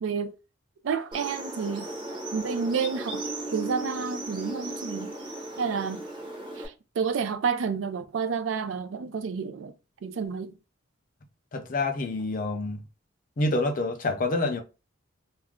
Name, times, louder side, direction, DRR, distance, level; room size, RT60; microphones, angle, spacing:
voice 1, 0.0-0.3 0.8-1.9 2.3-3.2 3.5-5.1 5.6-6.0 6.6-9.7 10.0-10.5, right 6 dB, 75° right, 0.4 m, -30 dB
sound 1, 1.1-6.7, right 2 dB, 25° right, 0.7 m, -36 dB
voice 2, 11.5-12.8 13.4-14.6, left 2 dB, 45° left, 0.5 m, -27 dB
2.4 x 2.1 x 3.5 m
head